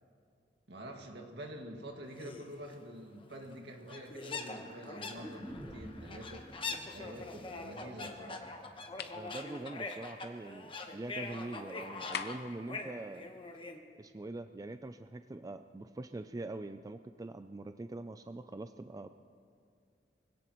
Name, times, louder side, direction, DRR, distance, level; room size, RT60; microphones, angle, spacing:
voice 1, 0.7-8.5, equal, 70° right, 2 dB, 2.0 m, -47 dB
sound 1, 2.2-2.5 3.2-3.3 3.5-3.6 3.9-13.8, left 3 dB, 30° left, 1.1 m, -43 dB
sound 2, 5.1-9.2 9.5-9.6, equal, ahead, 0.8 m, -51 dB
sound 3, 9.0-9.2 12.1-12.6, left 7 dB, 65° left, 0.7 m, -40 dB
voice 2, 9.1-13.3 14.0-19.1, right 2 dB, 20° right, 9 dB, 0.3 m, -43 dB
24.5 x 17.0 x 3.1 m, 2.3 s
head